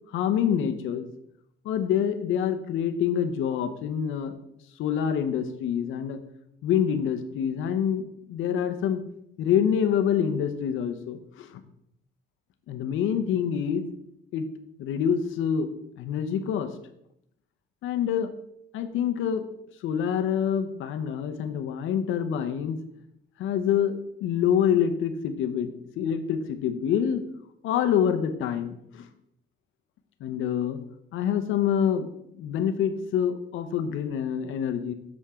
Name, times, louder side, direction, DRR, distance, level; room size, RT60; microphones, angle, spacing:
voice 1, 0.1-1.1 1.6-4.3 4.8-6.2 6.6-9.0 9.4-11.6 12.7-13.9 14.3-14.5 14.8-15.7 16.0-16.7 17.8-18.3 18.7-19.4 19.8-22.8 23.4-27.2 27.6-29.1 30.2-30.8 31.1-32.1 32.3-34.9, left 8 dB, 85° left, 9 dB, 0.8 m, -26 dB
8.5 x 6.4 x 3.6 m, 0.78 s
cardioid pair, 90°, 20 cm